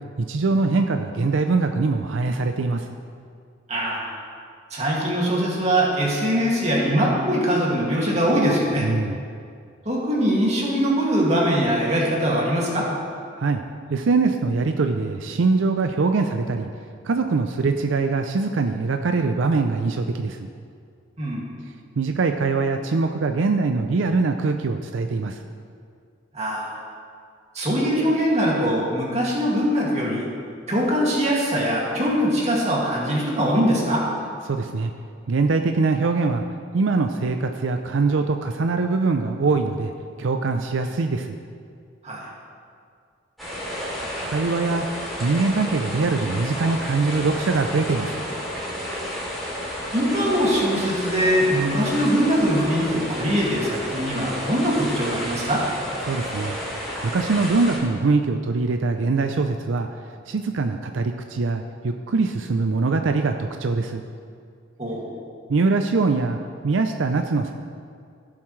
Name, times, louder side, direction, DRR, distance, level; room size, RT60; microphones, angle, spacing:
voice 1, 0.2-2.9 8.8-9.2 13.4-13.6 13.9-16.7 17.0-20.5 22.0-25.4 34.5-34.9 35.3-36.4 36.7-39.9 40.2-41.4 44.2-44.9 45.2-48.2 56.0-56.6 57.0-59.9 60.3-64.0 65.5-66.4 66.6-67.5, right 3 dB, 85° right, 6 dB, 0.5 m, -23 dB
voice 2, 3.7-4.1 4.7-8.9 9.9-12.9 21.2-21.5 26.3-26.7 27.5-30.3 30.7-34.0 42.0-42.2 49.9-55.6 64.8-65.1, equal, 35° right, -4 dB, 2.2 m, -22 dB
sound 1, 43.4-57.8, equal, ahead, 2.9 m, -31 dB
16.5 x 7.2 x 3.2 m, 2.2 s
head